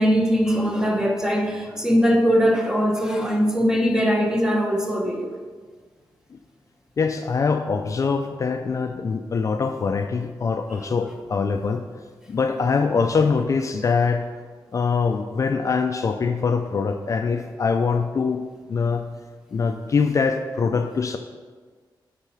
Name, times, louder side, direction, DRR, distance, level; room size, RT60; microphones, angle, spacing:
voice 1, 0.0-5.3, equal, 5° right, 2 dB, 0.8 m, -21 dB
voice 2, 7.0-11.8 12.3-14.2 14.7-18.4 18.7-19.1 19.5-21.2, left 5 dB, 40° left, 6 dB, 0.4 m, -23 dB
8.1 x 4.1 x 5.7 m, 1.5 s
wide cardioid pair, 165°, 8 cm